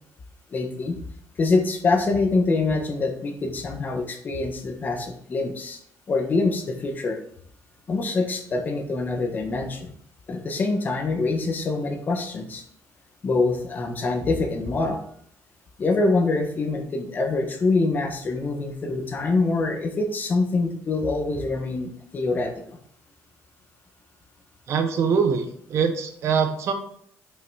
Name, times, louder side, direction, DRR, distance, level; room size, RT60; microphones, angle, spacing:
voice 1, 0.5-1.0 1.4-5.8 6.1-7.2 7.9-9.9 10.3-12.6 13.2-15.0 15.8-22.5, left 3 dB, 35° left, 4 dB, 1.2 m, -25 dB
voice 2, 24.7-26.7, right 6 dB, 55° right, 6 dB, 1.1 m, -23 dB
5.9 x 5.7 x 4.7 m, 0.67 s
cardioid pair, 135°, 6 cm